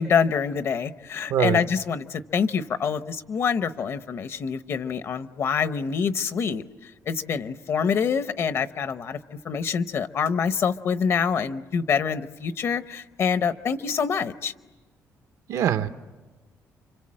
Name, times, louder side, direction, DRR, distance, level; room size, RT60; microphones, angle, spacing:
voice 1, 0.0-6.6 7.1-9.2 9.4-14.5, left 6 dB, 50° left, 12 dB, 0.9 m, -26 dB
voice 2, 1.3-1.6 15.5-15.9, right 10 dB, 80° right, 10 dB, 1.0 m, -23 dB
29.5 x 26.0 x 7.6 m, 1.3 s
cardioid pair, 170°, 6 cm